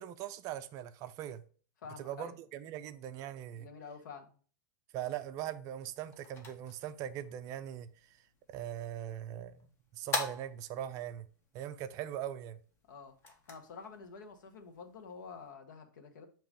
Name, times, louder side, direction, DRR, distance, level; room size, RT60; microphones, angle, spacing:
voice 1, 0.0-1.4 2.0-3.7 4.9-7.9 8.5-11.2 11.5-12.6, right 11 dB, 30° right, 0.4 m, -41 dB
voice 2, 1.8-2.3 3.5-4.3 12.9-13.1 13.5-16.3, left 5 dB, 75° left, 1.3 m, -48 dB
sound 1, 5.7-15.5, left 2 dB, 25° left, 1.3 m, -45 dB
7.2 x 3.0 x 5.1 m
hypercardioid pair, 145°, 11 cm